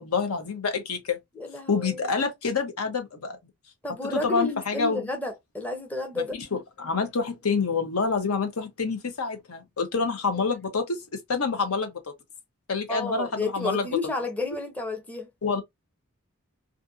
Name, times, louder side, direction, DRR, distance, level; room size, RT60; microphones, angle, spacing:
voice 1, 0.0-1.2 1.7-3.4 4.1-5.1 6.1-12.0 12.7-14.0 15.4-15.6, left 4 dB, 85° left, 0.8 m, -27 dB
voice 2, 1.4-2.1 3.8-6.4 10.3-10.4 12.9-15.3, left 3 dB, 5° left, 0.6 m, -31 dB
2.5 x 2.5 x 2.5 m
head